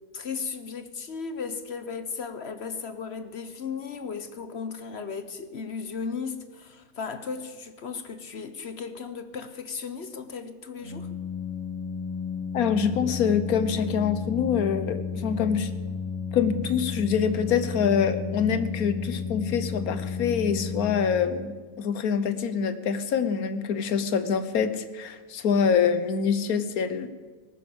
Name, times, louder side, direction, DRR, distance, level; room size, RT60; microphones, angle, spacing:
voice 1, 0.1-11.1, left 5 dB, 50° left, 10 dB, 1.0 m, -36 dB
Organ, 10.7-21.5, left 5 dB, 25° left, 5.5 m, -33 dB
voice 2, 12.5-15.7 16.3-27.1, left 7 dB, 75° left, 11 dB, 1.4 m, -25 dB
18.5 x 10.0 x 7.0 m, 1.4 s
omnidirectional pair, 1.6 m